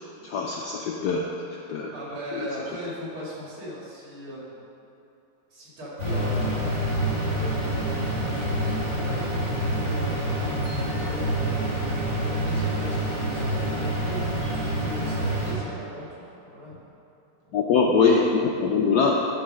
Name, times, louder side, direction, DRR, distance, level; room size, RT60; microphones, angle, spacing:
voice 1, 0.2-1.2 1.7-1.9 2.3-2.5 17.5-19.3, left 5 dB, 75° left, -1 dB, 0.9 m, -22 dB
voice 2, 1.9-4.6 5.5-6.6 7.3-14.2 14.8-16.8 17.4-17.6, equal, 75° right, -6 dB, 3.1 m, -39 dB
sound 1, 6.0-15.5, right 1 dB, 20° right, 1.9 m, -27 dB
sound 2, 10.6-14.7, right 3 dB, 35° right, 0.7 m, -47 dB
11.5 x 3.9 x 6.2 m, 2.8 s
omnidirectional pair, 2.4 m